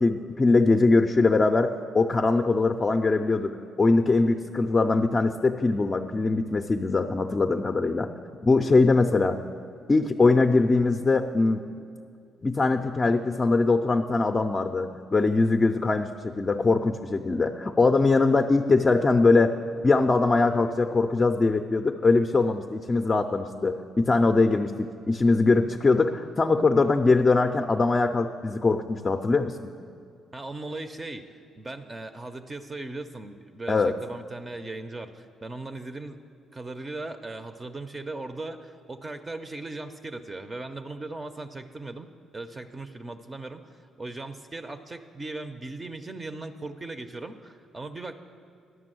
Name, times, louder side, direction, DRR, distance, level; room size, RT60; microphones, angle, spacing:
voice 1, 0.0-8.1 8.4-9.4 9.9-11.6 12.4-19.5 19.8-29.7 33.7-33.9, left 3 dB, 30° left, 4 dB, 0.4 m, -22 dB
voice 2, 30.3-36.2 36.5-42.1 42.3-48.2, right 2 dB, 25° right, 8 dB, 0.5 m, -38 dB
11.0 x 6.0 x 7.7 m, 2.4 s
cardioid pair, 90°, 0 cm